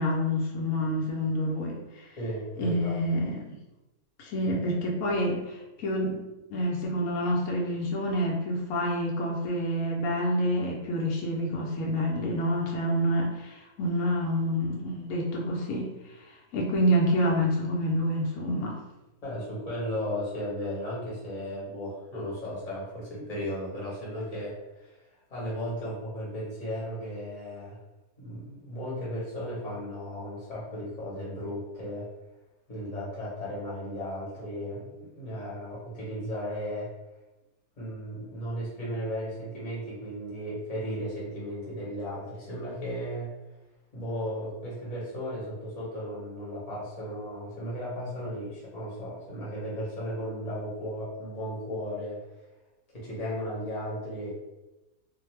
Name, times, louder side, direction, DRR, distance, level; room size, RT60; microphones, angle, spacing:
voice 1, 0.0-2.1 2.6-3.5 4.2-15.9 16.3-18.8, equal, 75° left, -2 dB, 1.0 m, -28 dB
voice 2, 2.2-3.0 4.4-4.7 19.2-24.9 25.3-27.8 28.2-32.1 32.7-36.9 37.8-43.3 43.9-52.2 52.9-54.5, equal, 30° left, -6 dB, 0.8 m, -35 dB
2.5 x 2.2 x 3.1 m, 1.0 s
omnidirectional pair, 1.5 m